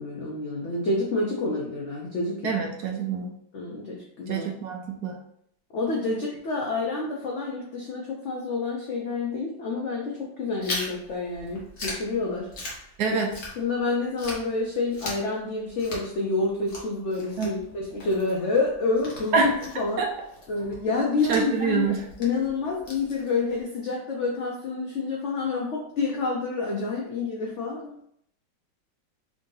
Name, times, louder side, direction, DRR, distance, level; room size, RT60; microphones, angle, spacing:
voice 1, 0.0-2.4 3.5-4.5 5.7-12.5 13.6-20.0 20.5-21.9 22.2-28.0, left 3 dB, 80° left, -2 dB, 0.6 m, -28 dB
voice 2, 2.4-3.3 4.3-5.2 13.0-13.3 17.4-17.5 19.3-19.5 20.0-20.1 21.3-22.0, right 5 dB, 70° right, 1 dB, 1.0 m, -25 dB
Chewing mastication, 10.6-13.9 14.2-23.6, left 2 dB, 45° left, 1.1 m, -39 dB
3.7 x 2.6 x 3.7 m, 0.72 s
omnidirectional pair, 2.0 m